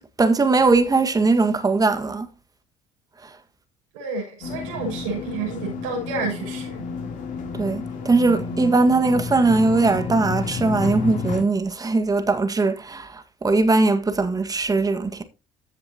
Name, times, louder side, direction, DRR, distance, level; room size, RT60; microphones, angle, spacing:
voice 1, 0.2-2.3 3.2-3.3 7.6-15.2, right 3 dB, 25° right, 1.8 m, -20 dB
voice 2, 3.9-6.8, right 4 dB, 90° right, 6.1 m, -30 dB
sound 1, 4.4-11.4, left 5 dB, 60° left, 3.3 m, -31 dB
14.5 x 7.4 x 2.9 m
supercardioid pair, 75°, 15 cm